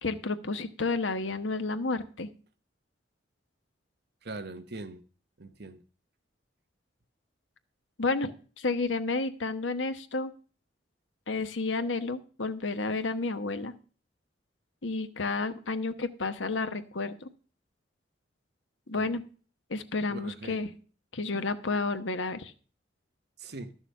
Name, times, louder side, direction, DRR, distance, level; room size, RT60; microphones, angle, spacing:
voice 1, 0.0-2.3 8.0-10.3 11.3-13.7 14.8-17.3 18.9-19.2 19.7-20.7 21.1-22.5, left 3 dB, 80° left, 1.1 m, -31 dB
voice 2, 4.2-5.0 5.4-5.8 19.0-19.1 20.1-20.7 23.4-23.7, right 2 dB, 60° right, 1.1 m, -41 dB
13.0 x 7.0 x 5.4 m
head